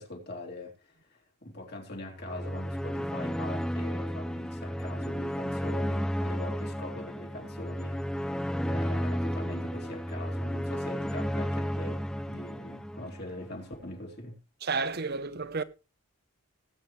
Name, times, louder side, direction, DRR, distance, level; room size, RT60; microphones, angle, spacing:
voice 1, 0.0-14.4, left 1 dB, 45° left, 3.3 m, -42 dB
sound 1, 2.2-13.5, equal, 5° left, 0.5 m, -33 dB
voice 2, 14.6-15.6, right 4 dB, 45° right, 0.9 m, -31 dB
19.5 x 8.8 x 3.3 m
head